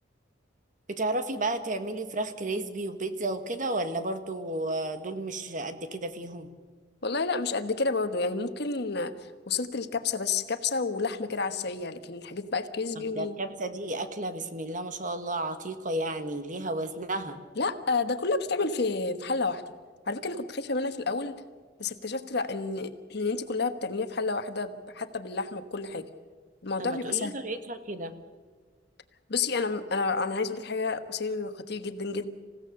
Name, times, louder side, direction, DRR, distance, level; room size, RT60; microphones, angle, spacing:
voice 1, 0.9-6.5 13.1-17.4 26.8-28.1, right 2 dB, 45° right, 9 dB, 1.6 m, -32 dB
voice 2, 7.0-13.4 17.6-19.6 20.1-21.4 21.8-26.0 26.6-27.3 29.3-32.3, left 4 dB, 65° left, 9 dB, 1.3 m, -30 dB
27.5 x 16.5 x 6.6 m, 1.5 s
head